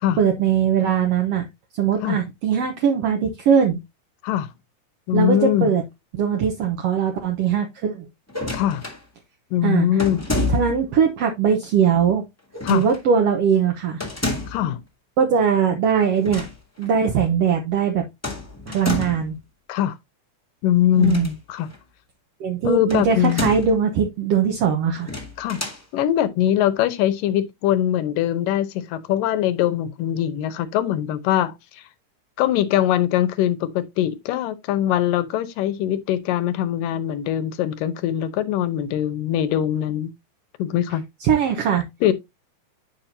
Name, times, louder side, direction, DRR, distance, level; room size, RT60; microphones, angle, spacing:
voice 1, 0.2-1.4 1.7-3.8 5.1-5.8 6.2-8.1 9.6-9.9 10.5-12.2 12.7-14.0 15.2-16.5 16.8-18.0 18.7-19.4 21.0-21.3 22.4-25.1 41.2-41.8, right 7 dB, 65° right, 1.6 m, -20 dB
voice 2, 5.1-5.7 8.5-8.8 9.5-10.2 12.6-12.9 14.5-14.8 19.7-19.9 20.6-21.7 22.7-23.5 25.4-25.6 25.9-31.8 32.4-40.1 40.6-41.0 42.0-42.1, left 11 dB, 80° left, 2.5 m, -22 dB
sound 1, 8.3-9.0 10.0-10.9 12.5-13.0 14.0-14.7 16.1-16.5 16.8-16.9 18.2-19.3 20.9-21.8 22.9-23.8 25.0-25.8, left 2 dB, 10° left, 0.9 m, -29 dB
9.5 x 5.7 x 2.7 m
omnidirectional pair, 3.9 m